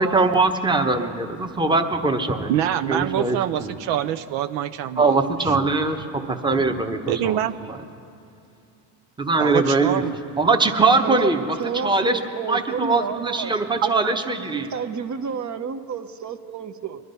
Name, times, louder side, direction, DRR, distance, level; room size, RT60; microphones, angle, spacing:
voice 1, 0.0-2.5 2.9-3.8 5.0-7.8 9.2-10.0 10.4-14.7, right 3 dB, 10° right, 5 dB, 1.0 m, -22 dB
voice 2, 2.5-5.2 5.4-5.5 7.1-7.5 9.4-10.1 13.8-14.1, right 11 dB, 70° right, 8 dB, 0.7 m, -25 dB
voice 3, 11.6-13.6 14.4-17.0, right 6 dB, 40° right, 10 dB, 0.9 m, -30 dB
23.0 x 11.0 x 5.5 m, 2.6 s
supercardioid pair, 95°, 46 cm